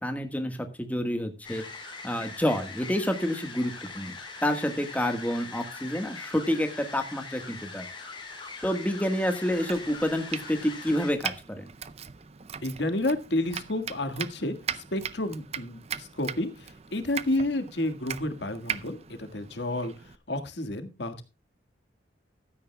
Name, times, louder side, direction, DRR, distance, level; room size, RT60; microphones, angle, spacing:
voice 1, 0.0-1.6 2.0-4.2 4.4-7.8 8.6-11.7, equal, 10° left, 6 dB, 1.5 m, -28 dB
sound 1, 1.4-11.1, left 4 dB, 25° left, 4.5 m, -42 dB
Domestic sounds home sounds, 9.5-20.2, right 8 dB, 35° right, 0.5 m, -39 dB
voice 2, 12.6-19.9 20.3-21.2, left 1 dB, 65° left, 8 dB, 1.7 m, -30 dB
15.5 x 13.0 x 2.3 m, 0.28 s
head